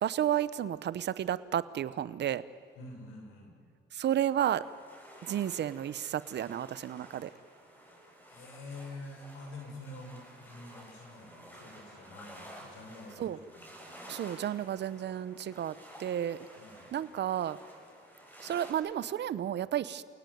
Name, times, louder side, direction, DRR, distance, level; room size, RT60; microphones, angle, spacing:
voice 1, 0.0-2.4 3.9-4.6 5.3-7.3 13.2-13.4 14.1-16.4 16.9-17.6 18.4-20.2, right 11 dB, 60° right, 16 dB, 0.9 m, -32 dB
voice 2, 2.8-3.5 8.3-13.7 16.6-16.9, left 2 dB, 90° left, 3 dB, 5.3 m, -47 dB
sound 1, 4.2-18.7, equal, 10° left, 7.5 m, -52 dB
28.5 x 18.0 x 9.4 m, 2.4 s
cardioid pair, 90°, 20 cm